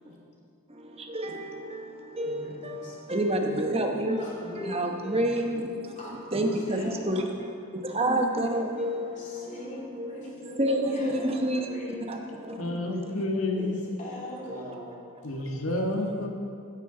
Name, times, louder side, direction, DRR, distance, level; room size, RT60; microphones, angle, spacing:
voice 1, 0.7-6.0 6.3-9.5 10.0-10.2 10.6-11.7 12.1-12.8 14.5-14.7, right 1 dB, 25° right, 3 dB, 1.0 m, -29 dB
voice 2, 2.2-3.0 4.2-5.3 6.0-7.3 8.9-12.3 13.5-15.0, left 1 dB, 35° left, -4 dB, 2.5 m, -41 dB
voice 3, 12.6-13.8 15.2-16.3, left 2 dB, 70° left, 1 dB, 1.5 m, -29 dB
16.0 x 9.7 x 3.9 m, 2.4 s
head